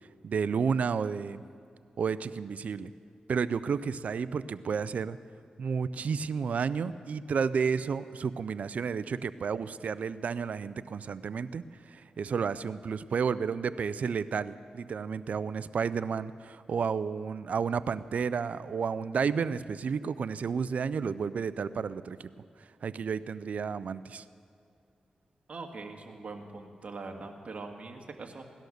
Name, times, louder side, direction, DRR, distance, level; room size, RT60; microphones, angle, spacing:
voice 1, 0.2-1.4 2.0-2.9 3.3-5.2 5.6-11.6 11.9-22.3 22.6-24.2, right 6 dB, 70° right, 15 dB, 0.5 m, -31 dB
voice 2, 25.5-28.4, right 3 dB, 55° right, 4 dB, 1.9 m, -42 dB
17.5 x 12.0 x 6.6 m, 2.4 s
cardioid pair, 50°, 3 cm